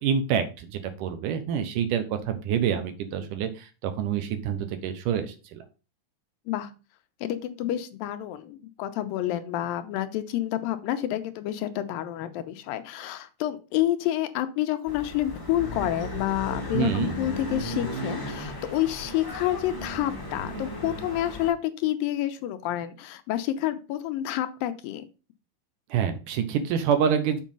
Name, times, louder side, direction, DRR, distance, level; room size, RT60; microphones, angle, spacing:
voice 1, 0.0-5.6 16.7-17.1 25.9-27.4, right 8 dB, 75° right, 8 dB, 2.3 m, -27 dB
voice 2, 7.2-25.1, left 13 dB, 85° left, 9 dB, 2.4 m, -29 dB
sound 1, 14.9-21.5, equal, 20° left, 0.6 m, -35 dB
7.3 x 4.6 x 5.3 m, 0.32 s
omnidirectional pair, 4.1 m